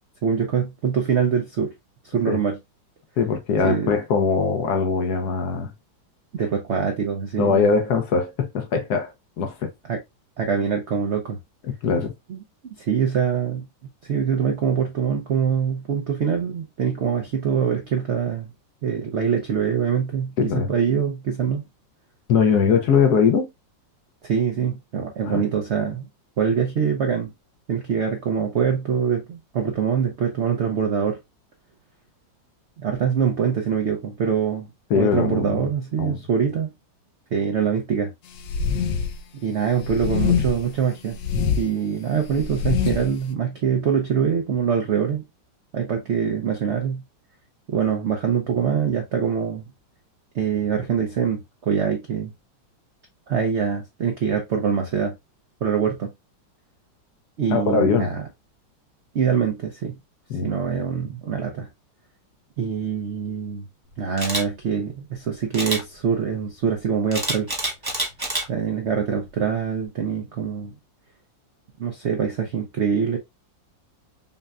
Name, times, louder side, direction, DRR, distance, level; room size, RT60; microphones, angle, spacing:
voice 1, 0.2-1.7 2.0-2.6 3.6-3.9 6.3-7.7 9.8-10.0 10.4-11.4 12.3-12.4 12.8-13.7 14.0-18.5 18.8-21.6 24.2-26.1 26.4-27.3 27.7-31.2 32.8-34.7 34.9-36.7 37.3-38.1 39.4-41.2 41.5-45.2 45.7-47.0 47.7-49.7 50.3-52.3 53.3-55.1 55.6-56.1 57.4-58.3 59.1-60.0 60.4-61.7 62.6-63.7 64.0-67.5 68.5-70.7 71.8-73.2, right 7 dB, 75° right, 0.6 m, -24 dB
voice 2, 3.2-5.7 7.4-9.7 11.6-12.1 20.4-20.7 22.3-23.5 25.3-25.5 34.9-35.7 36.0-36.2 57.5-58.1 60.3-60.5, left 5 dB, 70° left, 1.0 m, -21 dB
sound 1, 38.4-39.2 39.8-40.7 41.1-41.6 42.2-43.1, left 6 dB, 85° left, 1.3 m, -24 dB
Camera, 64.2-64.4 65.5-65.8 67.1-68.4 68.9-69.2, right 1 dB, 25° right, 0.5 m, -26 dB
5.6 x 2.2 x 2.4 m
omnidirectional pair, 2.0 m